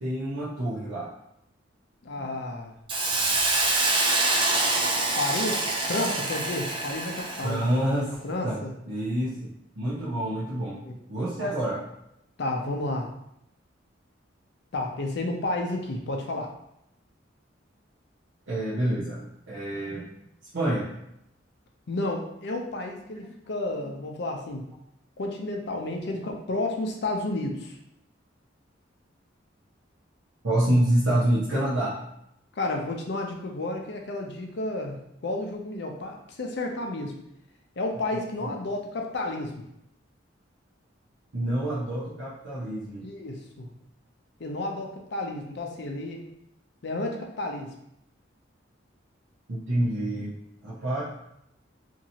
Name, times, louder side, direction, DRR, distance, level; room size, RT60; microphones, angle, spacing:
voice 1, 0.0-1.1 7.4-8.6 8.9-10.8 11.1-11.8 18.5-20.1 20.5-20.9 23.8-23.9 30.4-32.0 38.4-38.5 41.3-43.1 49.5-50.4 50.6-51.0, right 1 dB, 70° right, -9 dB, 0.8 m, -27 dB
voice 2, 2.0-2.7 5.2-7.6 8.2-8.7 10.8-10.9 11.4-11.5 12.4-13.1 14.7-16.5 21.9-24.6 25.2-27.7 32.6-37.2 37.8-39.5 43.0-43.7 44.4-46.2 46.8-47.7, left 2 dB, 60° left, 2 dB, 0.5 m, -31 dB
Hiss, 2.9-7.6, right 2 dB, 25° right, 0.3 m, -25 dB
2.9 x 2.7 x 2.7 m, 0.79 s
head